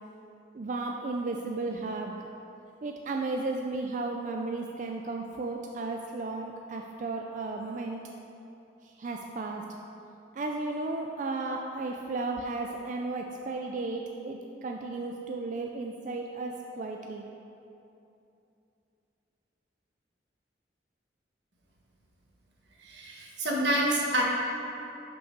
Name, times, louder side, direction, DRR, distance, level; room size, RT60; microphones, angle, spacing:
voice 1, 0.5-2.3 2.8-8.0 8.8-9.6 10.3-17.2, right 3 dB, 45° right, 2 dB, 0.4 m, -34 dB
voice 2, 22.8-24.2, right 1 dB, 85° right, -2 dB, 1.3 m, -27 dB
5.7 x 5.4 x 6.0 m, 2.8 s
head